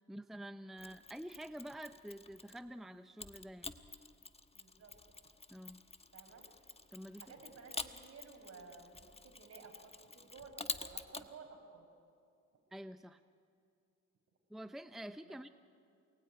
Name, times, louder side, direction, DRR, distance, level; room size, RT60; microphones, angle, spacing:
voice 1, 0.1-3.7 5.5-5.8 6.9-7.3 12.7-13.2 14.5-15.5, right 1 dB, ahead, 10 dB, 0.7 m, -48 dB
Mechanisms, 0.8-2.7 3.2-11.3, left 3 dB, 20° left, 1.3 m, -48 dB
voice 2, 4.5-4.9 6.1-6.4 7.2-11.9 15.2-15.4, right 4 dB, 55° right, 3 dB, 6.1 m, -55 dB
28.0 x 20.5 x 9.6 m, 2.5 s
cardioid pair, 90°, 30 cm